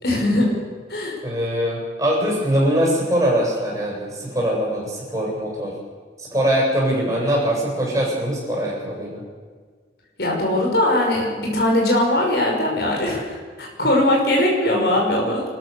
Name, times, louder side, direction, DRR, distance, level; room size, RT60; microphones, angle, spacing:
voice 1, 0.0-0.5 0.9-1.1 10.2-15.4, left 1 dB, 65° left, -1 dB, 5.5 m, -20 dB
voice 2, 1.2-5.7 6.2-9.2 13.8-13.9, equal, 20° right, -4 dB, 7.9 m, -22 dB
27.5 x 14.0 x 6.9 m, 1.5 s
head